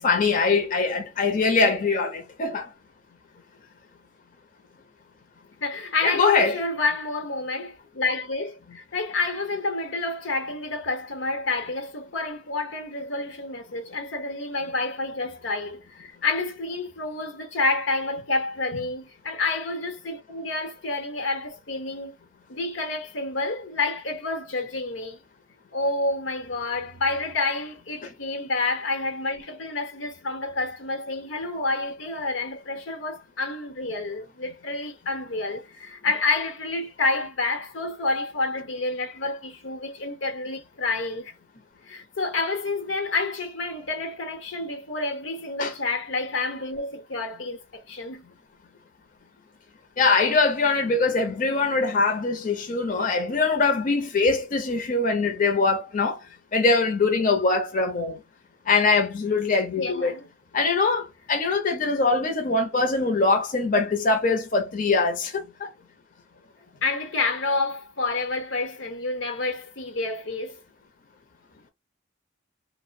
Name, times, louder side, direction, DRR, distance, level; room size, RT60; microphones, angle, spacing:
voice 1, 0.0-2.7 6.0-6.6 45.6-45.7 50.0-56.2 56.5-58.2 58.7-60.1 60.5-65.7, left 3 dB, 45° left, 0.6 m, -22 dB
voice 2, 5.6-22.2 22.5-25.2 25.7-48.2 59.8-60.3 66.8-70.6 71.5-71.6, left 3 dB, 85° left, 0.9 m, -29 dB
2.9 x 2.1 x 2.5 m
head